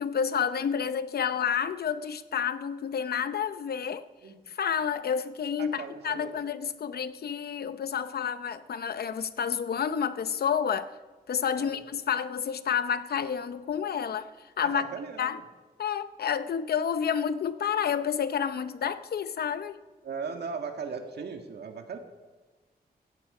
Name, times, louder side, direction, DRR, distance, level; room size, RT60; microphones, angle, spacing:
voice 1, 0.0-4.1 4.5-10.9 11.3-14.9 15.2-15.4 15.8-19.8, left 7 dB, 70° left, 0.7 m, -30 dB
voice 2, 5.6-6.3 11.6-11.8 14.6-15.4 20.0-22.0, right 5 dB, 80° right, 1.8 m, -37 dB
16.0 x 15.0 x 5.0 m
wide cardioid pair, 150°, 17 cm